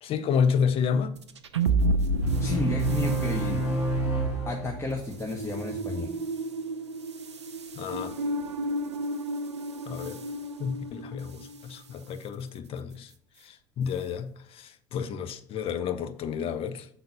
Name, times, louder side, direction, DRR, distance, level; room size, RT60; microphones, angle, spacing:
voice 1, 0.0-1.1 7.7-8.1 9.9-10.2 10.6-13.1 13.4-16.9, left 6 dB, 40° left, 0.7 m, -30 dB
sound 1, 1.2-11.7, right 2 dB, 80° right, 0.5 m, -31 dB
sound 2, 2.2-5.2, right 2 dB, 75° left, 2.7 m, -28 dB
voice 2, 2.4-3.7 4.5-6.1, left 3 dB, 20° left, 0.9 m, -32 dB
6.9 x 3.9 x 5.4 m
figure-of-eight pair, 60°, 14 cm